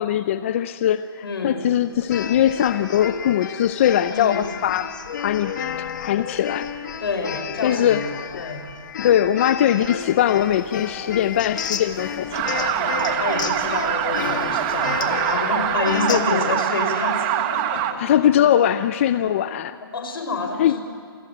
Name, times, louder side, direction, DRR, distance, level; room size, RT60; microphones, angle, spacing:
voice 1, 0.0-4.9 5.2-6.7 7.6-8.0 9.0-13.0 16.1-16.6 18.0-19.8 20.6-20.7, left 10 dB, 35° left, 12 dB, 0.6 m, -21 dB
voice 2, 1.2-1.6 4.1-4.5 7.0-8.1 8.4-8.7 12.7-18.0 18.4-18.5 19.8-20.8, left 4 dB, 75° left, 5 dB, 5.9 m, -28 dB
sound 1, 2.0-16.2, left 8 dB, 50° left, 1.9 m, -31 dB
sound 2, 10.0-15.1, left 3 dB, 10° left, 2.1 m, -41 dB
sound 3, 12.3-17.9, right 11 dB, 25° right, 1.1 m, -24 dB
28.0 x 19.0 x 9.4 m, 2.1 s
hypercardioid pair, 160°, 12 cm